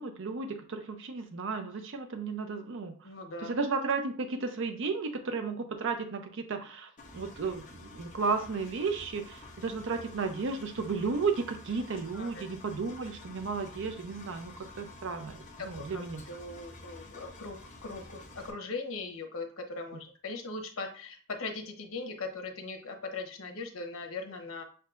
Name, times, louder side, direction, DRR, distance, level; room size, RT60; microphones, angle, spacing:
voice 1, 0.0-3.0 3.4-16.2, right 4 dB, 65° right, 7 dB, 0.5 m, -34 dB
voice 2, 3.0-3.5 12.1-12.4 15.6-24.6, left 3 dB, 85° left, 4 dB, 0.9 m, -40 dB
Engine, 7.0-18.5, left 2 dB, 40° left, 1.0 m, -50 dB
7.5 x 2.7 x 2.4 m, 0.42 s
head